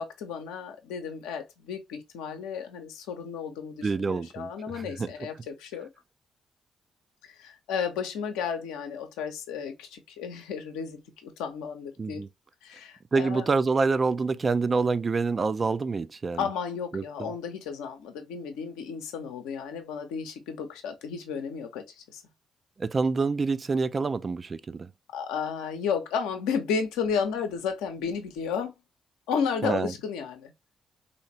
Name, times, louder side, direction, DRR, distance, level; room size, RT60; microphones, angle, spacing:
voice 1, 0.0-5.9 7.2-12.2 12.6-13.5 16.3-22.2 25.1-28.7 29.3-30.5, left 6 dB, 75° left, 0.7 m, -33 dB
voice 2, 3.8-5.1 12.0-12.3 13.1-16.5 16.9-17.3 22.8-24.9 29.6-29.9, right 4 dB, 40° right, 0.3 m, -27 dB
3.2 x 2.9 x 2.8 m
hypercardioid pair, 40°, 0 cm